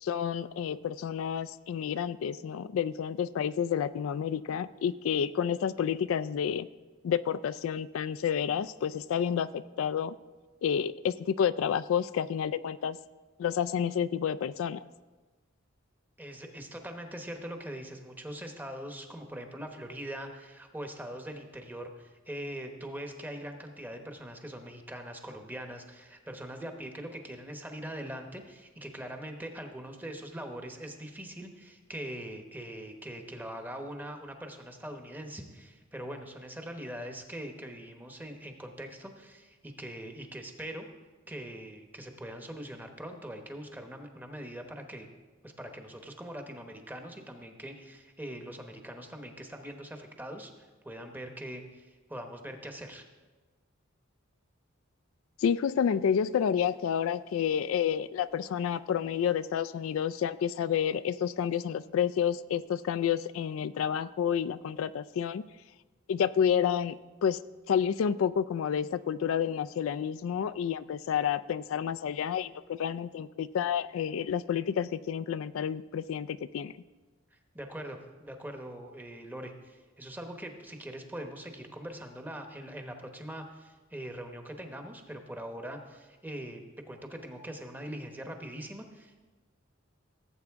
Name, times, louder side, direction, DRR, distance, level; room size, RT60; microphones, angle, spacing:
voice 1, 0.0-6.7 7.0-10.1 10.6-13.0 13.4-14.8 55.4-65.4 66.1-67.4 67.7-76.7, left 8 dB, 80° left, 14 dB, 0.3 m, -30 dB
voice 2, 16.2-40.9 41.3-45.1 45.4-50.5 50.8-53.0 77.5-89.2, right 1 dB, 10° right, 4 dB, 0.9 m, -42 dB
16.5 x 7.9 x 3.5 m, 1.3 s
head